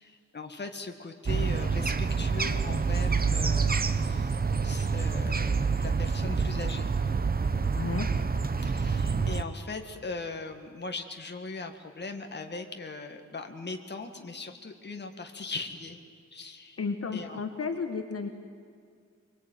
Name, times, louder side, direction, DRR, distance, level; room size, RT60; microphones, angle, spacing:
voice 1, 0.0-4.4 4.6-6.9 8.6-16.0 16.3-16.8 17.1-17.4, left 3 dB, 35° left, 5 dB, 1.9 m, -39 dB
sound 1, 1.3-9.4, right 5 dB, 30° right, 0.9 m, -27 dB
voice 2, 7.7-8.1 16.8-18.3, left 5 dB, 55° left, 5 dB, 1.7 m, -32 dB
24.0 x 23.5 x 9.2 m, 2.3 s
wide cardioid pair, 170°, 29 cm